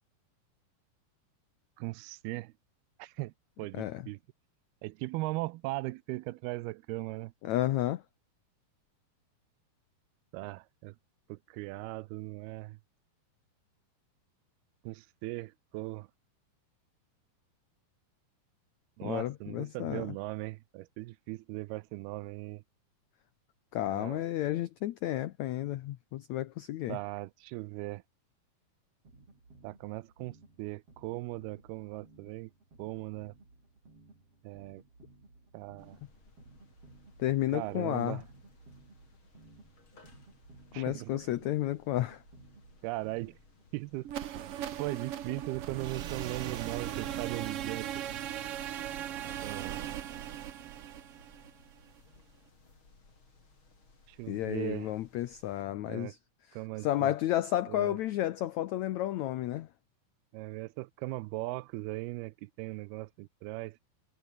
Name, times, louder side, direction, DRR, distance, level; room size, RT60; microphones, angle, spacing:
voice 1, 1.8-2.5 3.0-3.3 3.6-4.2 4.8-7.3 10.3-10.9 11.3-12.8 14.8-16.1 19.0-22.6 23.9-24.3 26.9-28.0 29.6-32.5 32.8-33.4 34.4-34.8 35.5-36.0 37.5-38.2 40.7-41.2 42.8-43.4 43.7-44.1 44.8-47.9 49.4-49.8 54.1-55.0 55.9-56.1 56.5-57.2 57.7-58.0 60.3-63.8, right 20 dB, 90° right, 2.6 m, -38 dB
voice 2, 7.4-8.0 19.0-20.1 23.7-27.0 37.2-38.2 40.8-42.2 54.3-56.2 56.8-59.7, left 14 dB, 85° left, 1.6 m, -32 dB
sound 1, 29.0-43.7, right 3 dB, 35° right, 8.3 m, -58 dB
sound 2, 35.8-55.6, left 3 dB, 30° left, 5.5 m, -62 dB
sound 3, 44.0-52.0, right 10 dB, 70° right, 1.4 m, -38 dB
omnidirectional pair, 4.4 m